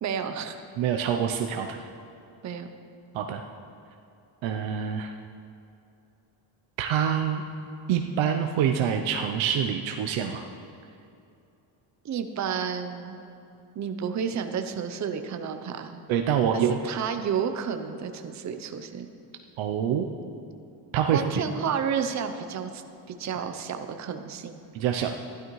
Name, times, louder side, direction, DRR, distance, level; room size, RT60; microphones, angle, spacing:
voice 1, 0.0-0.6 2.4-2.7 12.0-13.2 13.8-16.0 16.5-19.1 21.1-22.8 23.1-24.6, right 7 dB, 35° right, 7 dB, 0.7 m, -31 dB
voice 2, 0.8-1.8 3.1-3.4 4.4-5.1 6.8-7.4 7.9-10.4 16.1-16.8 19.6-20.1 20.9-21.4 24.7-25.1, right 8 dB, 75° right, 4 dB, 0.7 m, -26 dB
13.0 x 11.5 x 3.1 m, 2.7 s
cardioid pair, 110°, 47 cm